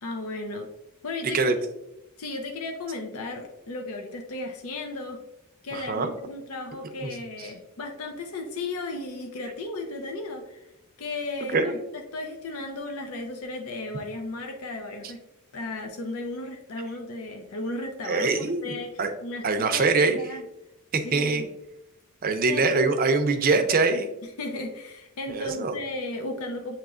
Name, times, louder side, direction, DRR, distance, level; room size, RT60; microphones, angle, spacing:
voice 1, 0.0-0.7 1.0-1.5 2.2-5.2 5.6-10.7 11.0-15.2 15.5-20.4 21.0-21.5 22.5-22.9 24.2-26.7, left 2 dB, 80° left, 3 dB, 0.6 m, -35 dB
voice 2, 5.7-6.1 7.0-7.1 11.5-11.7 18.1-19.1 19.4-20.2 20.9-21.4 22.2-24.1 25.3-25.8, right 3 dB, 40° right, 6 dB, 0.5 m, -23 dB
7.1 x 3.0 x 2.4 m, 0.91 s
head